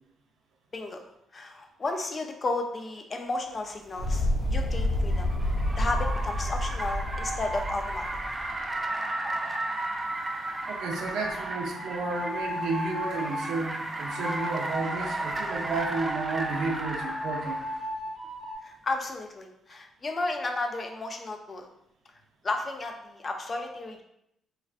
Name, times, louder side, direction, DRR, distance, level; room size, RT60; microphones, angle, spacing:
voice 1, 0.7-5.3 5.8-8.1 18.6-21.7 22.4-24.0, left 2 dB, 35° left, 3 dB, 0.4 m, -33 dB
Car, 3.9-17.8, right 2 dB, 25° right, 0.4 m, -35 dB
sound 1, 4.0-8.5, left 1 dB, 80° left, 0.6 m, -29 dB
sound 2, 7.1-13.5 14.0-18.6, equal, 65° right, 1.0 m, -37 dB
voice 2, 10.7-17.6, right 3 dB, 80° right, 2 dB, 0.5 m, -32 dB
3.2 x 2.4 x 2.4 m, 0.80 s
cardioid pair, 90°, 0 cm